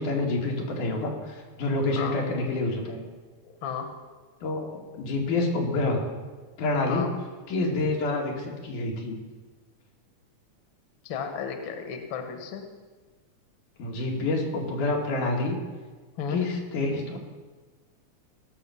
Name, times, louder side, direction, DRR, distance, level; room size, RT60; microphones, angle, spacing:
voice 1, 0.0-3.0 4.4-4.7 4.9-6.0 6.6-7.1 7.5-9.2 13.8-15.6 16.3-17.2, left 2 dB, 90° left, 0 dB, 3.5 m, -27 dB
voice 2, 3.4-3.9 6.9-7.1 11.0-12.7 16.2-16.4, left 7 dB, 55° left, 5 dB, 1.6 m, -33 dB
17.0 x 6.5 x 6.9 m, 1.4 s
omnidirectional pair, 3.5 m